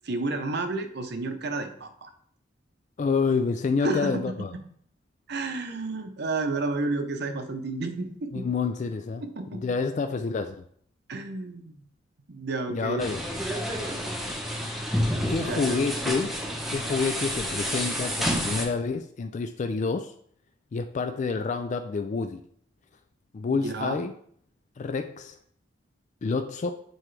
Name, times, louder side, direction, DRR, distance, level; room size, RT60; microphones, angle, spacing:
voice 1, 0.0-2.1 3.8-4.2 5.3-8.5 9.2-9.6 11.1-11.8 12.3-13.1 15.4-15.8 23.5-24.0, right 3 dB, 60° right, 7 dB, 0.8 m, -31 dB
voice 2, 3.0-4.5 8.3-9.2 9.5-10.6 12.7-13.2 15.3-16.4 16.7-20.1 20.7-22.4 23.3-24.1 24.8-25.4 26.2-26.7, left 4 dB, 40° left, 7 dB, 0.3 m, -28 dB
sound 1, 13.0-18.7, equal, ahead, 0.9 m, -29 dB
7.9 x 4.4 x 3.3 m, 0.62 s
head